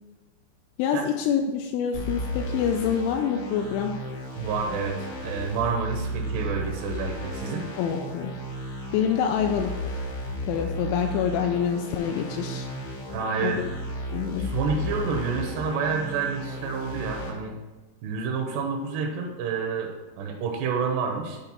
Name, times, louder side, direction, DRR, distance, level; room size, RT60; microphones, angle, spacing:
voice 1, 0.8-4.0 7.8-8.3 8.9-10.1 10.5-12.7 13.4-13.7 14.1-14.5, left 8 dB, 85° left, 4 dB, 2.8 m, -26 dB
sound 1, 1.9-17.3, equal, 70° left, 1.6 m, -34 dB
voice 2, 4.4-7.7 13.1-13.6 14.4-17.6 18.0-19.9 20.2-21.4, right 5 dB, 80° right, 1 dB, 2.7 m, -29 dB
8.7 x 3.3 x 5.9 m, 1.2 s
omnidirectional pair, 5.3 m